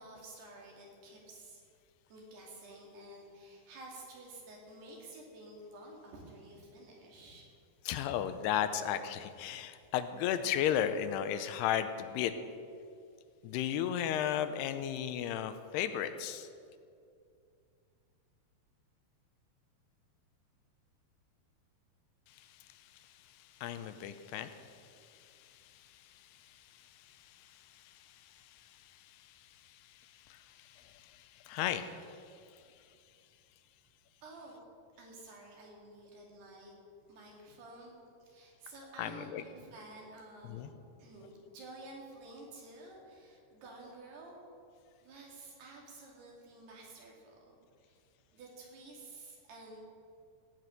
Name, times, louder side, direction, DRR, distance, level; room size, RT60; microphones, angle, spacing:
voice 1, 0.0-1.6 2.1-7.5 34.2-34.6 35.0-36.7 37.1-37.9 38.2-40.7 41.0-44.4 45.0-47.6 47.8-48.0 48.3-49.9, right 2 dB, 75° right, -2 dB, 4.6 m, -51 dB
voice 2, 7.9-12.3 13.4-16.5 22.4-22.5 23.6-32.2 39.0-39.4 40.4-40.7, left 10 dB, 85° left, 10 dB, 2.7 m, -36 dB
16.5 x 6.0 x 9.1 m, 2.4 s
omnidirectional pair, 4.6 m